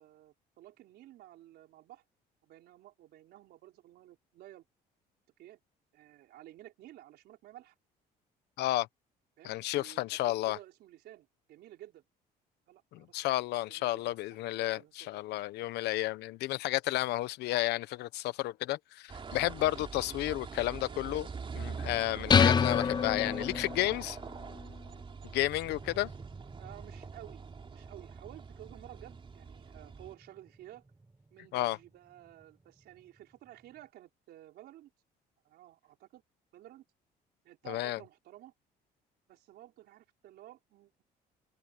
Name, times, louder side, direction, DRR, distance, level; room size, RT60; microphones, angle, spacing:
voice 1, 0.0-2.0 2.4-4.6 5.4-5.6 5.9-7.7 9.4-12.0 12.7-13.2 13.5-15.2 20.9-21.2 26.6-27.4 27.7-30.9 31.3-34.9 35.4-36.2 36.5-36.8 37.4-38.5 39.3-41.0, right 14 dB, 75° right, 4.4 m, -53 dB
voice 2, 9.4-10.6 12.9-21.3 21.5-24.2 25.3-26.1 31.5-31.8 37.7-38.0, left 17 dB, 80° left, 1.0 m, -32 dB
sound 1, 19.1-30.1, right 5 dB, 30° right, 3.7 m, -44 dB
sound 2, 22.3-23.9, left 6 dB, 25° left, 0.4 m, -25 dB
sound 3, 25.6-33.9, right 2 dB, 15° right, 4.5 m, -57 dB
cardioid pair, 110°, 17 cm